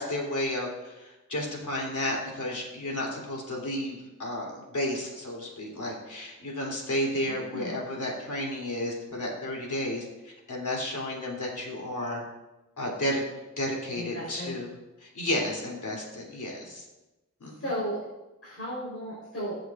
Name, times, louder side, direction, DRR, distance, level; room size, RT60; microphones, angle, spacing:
voice 1, 0.0-12.2 12.8-13.2 13.6-14.7 15.0-16.8 17.4-17.6, left 1 dB, 70° left, -2 dB, 3.4 m, -32 dB
voice 2, 13.9-14.6 17.6-18.0 18.4-19.6, equal, 50° left, -8 dB, 4.3 m, -34 dB
23.0 x 7.8 x 2.6 m, 1.0 s
wide cardioid pair, 90°, 31 cm